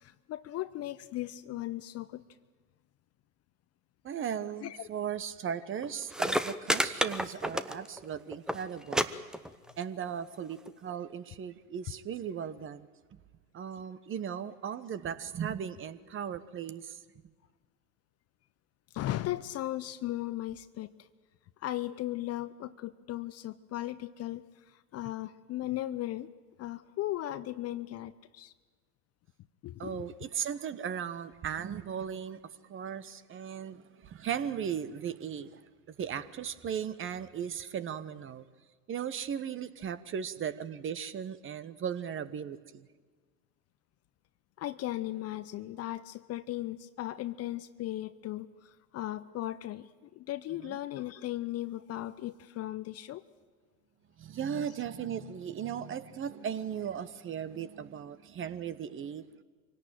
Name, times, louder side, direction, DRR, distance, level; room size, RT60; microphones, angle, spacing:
voice 1, 0.0-2.2 4.6-4.9 18.9-20.9 21.6-24.4 24.9-26.3 26.6-28.5 29.6-30.1 44.6-48.5 48.9-49.8 50.2-53.2, left 14 dB, 30° left, 15 dB, 0.8 m, -37 dB
voice 2, 4.0-9.1 9.8-12.9 13.5-17.0 29.8-32.4 32.7-35.6 35.9-38.4 38.9-42.9 50.6-50.8 54.2-59.2, right 8 dB, 25° right, 15 dB, 1.1 m, -37 dB
sound 1, 5.8-5.9 6.1-8.0 8.3-8.6 8.9-9.0 9.3-9.8 10.7-10.8, equal, ahead, 0.8 m, -29 dB
24.5 x 17.5 x 9.2 m, 1.4 s
hypercardioid pair, 100°, 47 cm